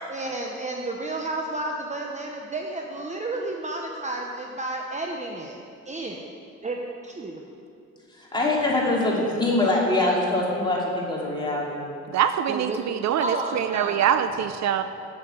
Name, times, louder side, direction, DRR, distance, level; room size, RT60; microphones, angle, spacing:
voice 1, 0.1-5.6 5.8-6.2 6.6-6.8 7.0-7.4 12.5-14.3, right 2 dB, 25° right, 1 dB, 0.8 m, -32 dB
voice 2, 8.2-11.8, left 2 dB, 15° left, -4 dB, 2.7 m, -23 dB
voice 3, 12.1-14.8, right 9 dB, 65° right, 10 dB, 0.5 m, -24 dB
7.9 x 7.1 x 7.7 m, 2.5 s
cardioid pair, 90°, 30 cm